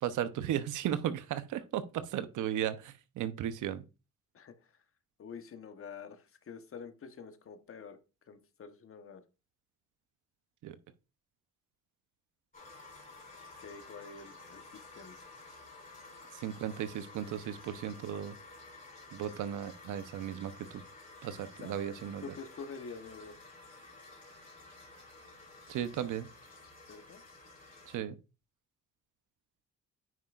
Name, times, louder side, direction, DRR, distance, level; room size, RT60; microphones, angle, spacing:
voice 1, 0.0-3.8 10.6-10.8 16.3-18.4 19.1-20.8 21.2-22.2 25.7-26.3 27.9-28.2, right 10 dB, 80° right, 0.8 m, -35 dB
voice 2, 4.3-4.7 5.2-8.0 8.3-9.2 13.6-15.2 21.6-23.4 26.9-27.2, left 5 dB, 45° left, 1.1 m, -47 dB
sound 1, 12.5-28.0, left 3 dB, 25° left, 3.2 m, -52 dB
9.4 x 5.7 x 2.4 m
cardioid pair, 90°, 30 cm